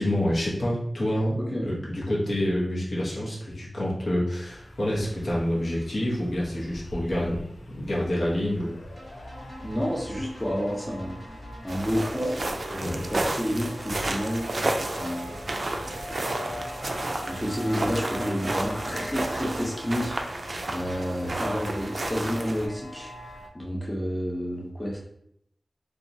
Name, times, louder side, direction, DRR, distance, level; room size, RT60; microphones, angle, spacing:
voice 1, 0.0-7.4 7.7-8.8 12.8-13.0, left 1 dB, 65° left, -5 dB, 0.8 m, -27 dB
sound 1, 4.4-23.5, left 1 dB, 85° left, 0.4 m, -42 dB
sound 2, 9.0-22.7, equal, 30° right, 0.7 m, -44 dB
voice 2, 9.6-11.1 11.6-14.4 14.9-15.3 17.3-23.1 23.5-25.0, equal, 10° left, -3 dB, 0.6 m, -30 dB
sound 3, 11.7-22.7, right 2 dB, 55° right, 0.3 m, -32 dB
2.8 x 2.2 x 2.5 m, 0.73 s
wide cardioid pair, 80°, 0 cm